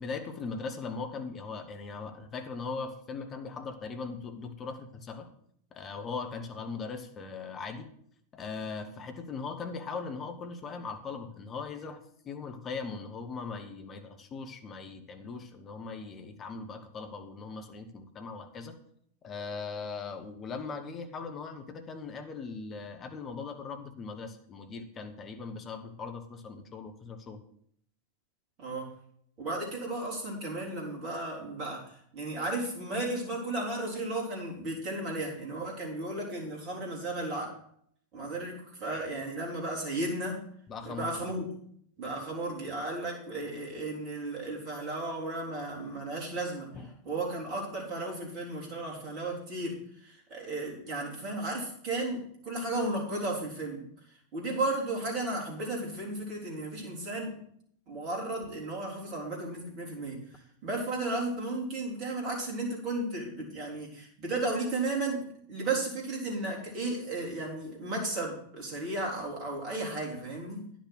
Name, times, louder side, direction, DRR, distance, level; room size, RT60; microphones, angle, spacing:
voice 1, 0.0-5.3 5.7-7.9 8.3-12.0 12.2-18.8 19.2-27.4 40.7-41.1 46.7-46.9, left 4 dB, 25° left, 6 dB, 1.3 m, -39 dB
voice 2, 29.4-37.5 38.1-40.4 40.8-41.5 42.0-46.7 47.0-57.4 57.9-70.7, right 2 dB, 40° right, -2 dB, 3.8 m, -34 dB
10.0 x 6.3 x 6.3 m, 0.67 s
figure-of-eight pair, 90°, 0 cm